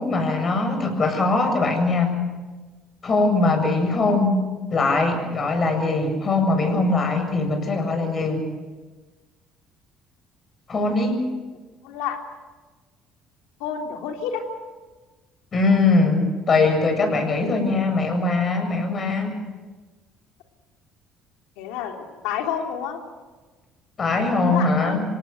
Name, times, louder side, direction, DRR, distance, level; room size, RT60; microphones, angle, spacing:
voice 1, 0.0-2.2 3.0-4.4 4.7-8.4 10.7-11.2 15.5-19.4 24.0-25.0, left 3 dB, 40° left, 5 dB, 7.4 m, -21 dB
voice 2, 11.8-12.2 13.6-14.4 21.6-23.0 24.4-25.0, left 8 dB, 85° left, 3 dB, 3.3 m, -29 dB
26.0 x 18.0 x 7.9 m, 1.3 s
supercardioid pair, 80°, 0 cm